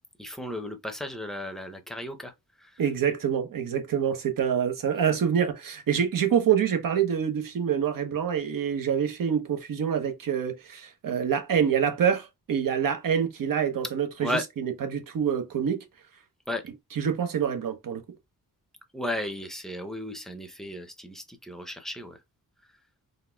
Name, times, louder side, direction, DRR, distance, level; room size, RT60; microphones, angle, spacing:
voice 1, 0.2-2.3 14.2-14.4 16.5-16.6 18.9-22.2, left 1 dB, ahead, 0.7 m, -34 dB
voice 2, 2.8-15.8 16.6-18.0, right 8 dB, 65° right, 0.9 m, -26 dB
3.9 x 2.6 x 2.2 m
cardioid pair, 95°, 36 cm